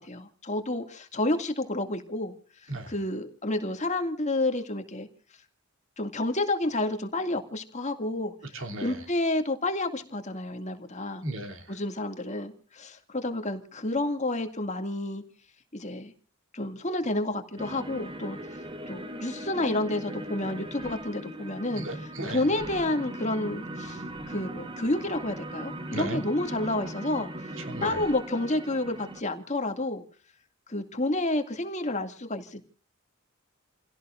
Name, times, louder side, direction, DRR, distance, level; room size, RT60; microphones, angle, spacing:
voice 1, 0.0-2.4 2.6-5.1 6.0-8.3 8.8-11.2 11.7-15.2 15.7-16.1 16.5-18.4 18.9-21.9 22.3-30.0 30.7-32.6, left 2 dB, 35° left, 2.2 m, -30 dB
voice 2, 8.5-9.0 11.2-11.8 21.8-22.5 25.9-26.2 27.6-28.0, right 1 dB, 65° right, 3.0 m, -35 dB
sound 1, 17.6-29.2, right 1 dB, 25° right, 1.3 m, -39 dB
30.0 x 17.0 x 2.5 m
head